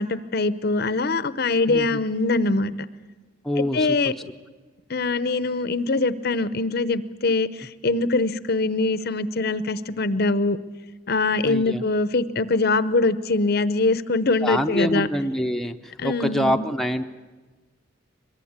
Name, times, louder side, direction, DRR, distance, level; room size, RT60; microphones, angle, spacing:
voice 1, 0.0-2.7 3.6-4.1 4.9-10.6 11.1-15.1 16.0-16.7, left 3 dB, 50° left, 15 dB, 0.8 m, -23 dB
voice 2, 1.7-2.0 3.4-4.0 11.4-11.8 14.4-17.0, equal, ahead, 4 dB, 0.8 m, -25 dB
22.5 x 22.5 x 8.8 m, 1.3 s
head